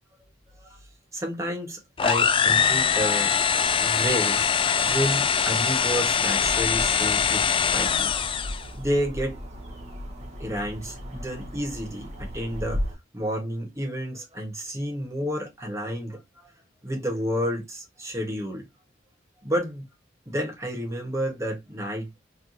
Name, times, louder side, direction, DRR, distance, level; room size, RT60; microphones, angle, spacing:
voice 1, 1.1-3.4 3.7-4.4 4.8-8.1 8.8-9.4 10.4-12.8 13.1-16.2 16.8-18.6 19.4-19.8 20.3-22.2, equal, 15° right, 1.3 m, -30 dB
sound 1, 2.0-8.7, left 7 dB, 25° left, 0.4 m, -23 dB
sound 2, 6.4-12.9, equal, 35° right, 1.2 m, -36 dB
3.3 x 3.3 x 2.8 m
head